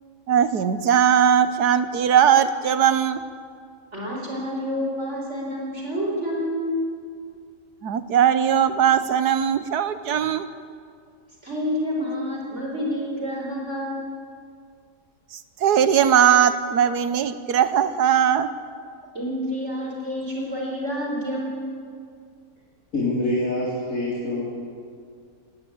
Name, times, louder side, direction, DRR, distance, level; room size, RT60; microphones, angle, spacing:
voice 1, 0.3-3.2 7.8-10.5 15.6-18.5, right 9 dB, 70° right, 12 dB, 1.5 m, -19 dB
voice 2, 3.9-6.7 11.4-14.1 19.1-21.7, equal, 40° right, -2 dB, 4.4 m, -28 dB
voice 3, 22.9-24.4, left 1 dB, 50° left, -6 dB, 4.1 m, -25 dB
19.0 x 19.0 x 8.6 m, 2.2 s
omnidirectional pair, 1.8 m